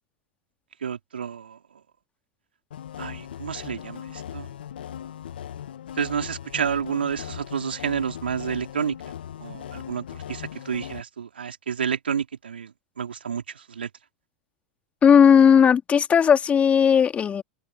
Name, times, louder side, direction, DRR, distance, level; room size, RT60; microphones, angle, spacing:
voice 1, 0.8-1.6 3.0-4.5 6.0-9.0 9.4-13.9, right 7 dB, 80° right, 3.6 m, -30 dB
sound 1, 2.7-11.0, left 10 dB, 70° left, 2.3 m, -38 dB
voice 2, 15.0-17.4, left 7 dB, 25° left, 2.5 m, -16 dB
open air
hypercardioid pair, 95°, 5 cm